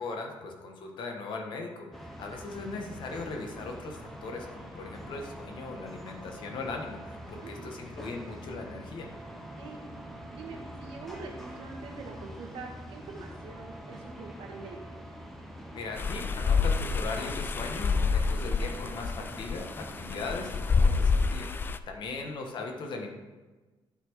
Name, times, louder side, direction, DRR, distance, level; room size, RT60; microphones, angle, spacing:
voice 1, 0.0-9.1 15.7-23.1, left 3 dB, 65° left, 2 dB, 1.3 m, -39 dB
sound 1, 1.9-21.4, equal, 5° left, 0.9 m, -44 dB
voice 2, 7.3-7.7 9.6-9.8 10.3-14.8 22.0-22.2, right 4 dB, 90° right, 1 dB, 1.5 m, -44 dB
sound 2, 16.0-21.8, left 5 dB, 25° left, 0.3 m, -28 dB
11.5 x 4.2 x 4.7 m, 1.2 s
cardioid pair, 145°, 9 cm